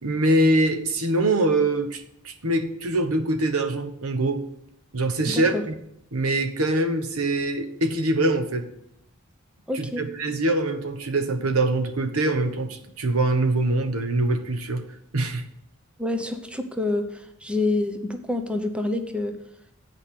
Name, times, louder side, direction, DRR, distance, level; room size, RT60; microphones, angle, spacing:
voice 1, 0.0-2.0 2.2-4.4 4.9-5.7 6.1-8.7 9.7-14.8 15.1-15.4, right 2 dB, 80° right, 7 dB, 1.2 m, -23 dB
voice 2, 9.7-10.0 16.0-19.3, left 2 dB, 5° right, 6 dB, 0.7 m, -27 dB
8.3 x 5.1 x 7.6 m, 0.77 s
head